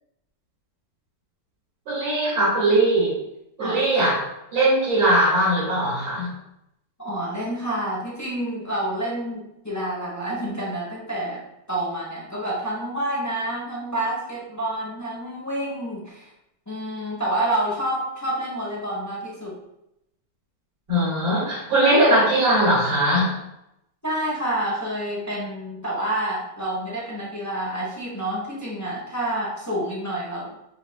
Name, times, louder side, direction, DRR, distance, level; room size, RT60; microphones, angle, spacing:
voice 1, 1.9-3.1 3.6-4.2 4.5-6.3 20.9-23.3, right 1 dB, 80° right, -9 dB, 2.6 m, -20 dB
voice 2, 7.0-11.4 11.7-16.3 16.7-19.6 24.0-30.5, right 1 dB, 20° left, -6 dB, 0.4 m, -28 dB
6.8 x 2.8 x 2.3 m, 0.83 s
omnidirectional pair, 2.0 m